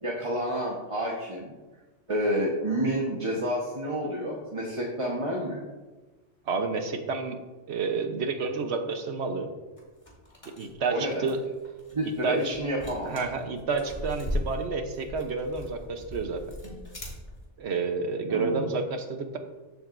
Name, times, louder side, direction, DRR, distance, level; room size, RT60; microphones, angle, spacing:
voice 1, 0.0-1.5 2.1-5.6 10.9-11.4 11.9-13.2 18.3-18.8, equal, 25° right, -3 dB, 1.2 m, -29 dB
voice 2, 6.5-7.4 7.7-9.5 10.6-11.4 12.2-12.6 13.0-16.4 17.6-19.4, right 4 dB, 65° right, 6 dB, 1.2 m, -30 dB
sound 1, 9.8-17.5, left 1 dB, 25° left, 2.2 m, -38 dB
13.5 x 7.7 x 2.6 m, 1.2 s
omnidirectional pair, 1.3 m